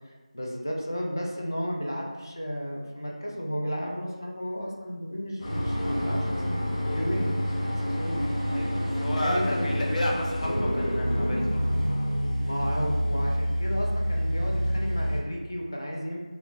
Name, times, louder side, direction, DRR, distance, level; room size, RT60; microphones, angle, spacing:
voice 1, 0.0-7.4 7.6-8.3 9.1-9.7 12.4-16.2, equal, 30° left, -1 dB, 0.3 m, -33 dB
sound 1, 5.4-15.2, equal, 45° left, 1.3 m, -27 dB
voice 2, 8.5-11.7, left 1 dB, 70° left, -4 dB, 0.8 m, -31 dB
4.1 x 2.0 x 2.3 m, 1.3 s
figure-of-eight pair, 175°, 4 cm